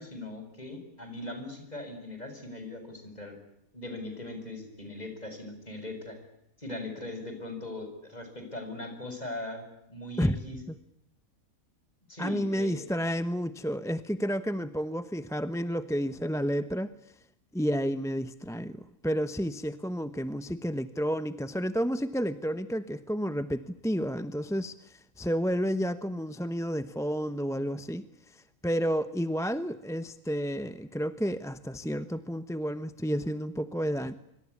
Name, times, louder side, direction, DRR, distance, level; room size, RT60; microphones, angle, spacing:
voice 1, 0.0-3.3 3.7-6.2 6.6-9.6 9.9-10.6 12.1-12.8, left 2 dB, 30° left, 6 dB, 7.4 m, -40 dB
voice 2, 12.2-17.1 17.5-34.1, equal, 5° left, 12 dB, 0.8 m, -31 dB
26.0 x 25.5 x 8.5 m, 0.80 s
omnidirectional pair, 1.5 m